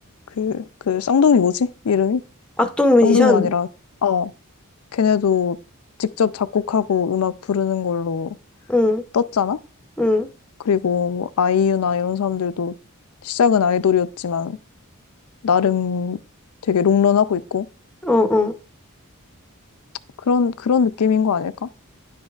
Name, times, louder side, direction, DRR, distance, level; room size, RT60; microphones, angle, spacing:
voice 1, 0.4-2.2 3.0-3.7 4.0-4.3 4.9-5.6 6.0-8.4 9.1-9.6 10.7-12.7 13.2-14.6 15.4-16.2 16.7-17.7 20.3-21.7, left 7 dB, 80° left, 0.4 m, -20 dB
voice 2, 2.6-3.5 8.7-9.0 10.0-10.3 18.0-18.5, left 2 dB, 5° left, 0.7 m, -17 dB
10.5 x 5.1 x 2.4 m
head